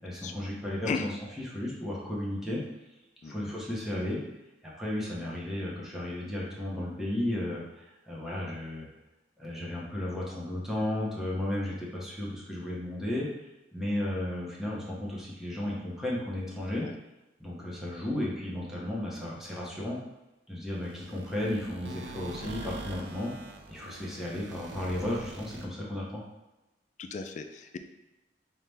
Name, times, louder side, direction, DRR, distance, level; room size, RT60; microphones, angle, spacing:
voice 1, 0.0-2.6 3.2-4.2 4.8-8.9 9.4-13.3 13.7-16.9 17.4-20.0 20.5-23.3 23.7-26.2, left 1 dB, ahead, -5 dB, 0.9 m, -34 dB
sound 1, 20.7-25.7, right 2 dB, 70° right, 0.4 m, -44 dB
voice 2, 27.0-27.8, left 4 dB, 45° left, 7 dB, 0.3 m, -35 dB
5.6 x 2.2 x 3.4 m, 1.0 s
head